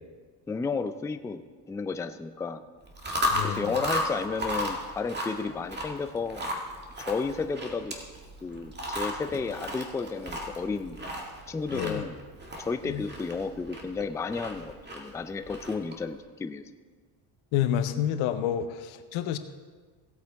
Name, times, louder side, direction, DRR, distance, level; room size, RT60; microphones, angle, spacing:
voice 1, 0.5-1.4 1.7-2.6 3.4-6.5 7.1-7.9 8.4-11.0 11.5-12.2 12.6-16.6, left 4 dB, 5° left, 9 dB, 0.3 m, -32 dB
Chewing mastication, 2.8-16.1, equal, 20° right, 1.9 m, -35 dB
voice 2, 3.3-3.8 11.7-12.1 12.9-13.0 17.5-19.4, left 10 dB, 90° left, 9 dB, 0.9 m, -29 dB
17.0 x 8.2 x 3.5 m, 1.5 s
cardioid pair, 110°, 45 cm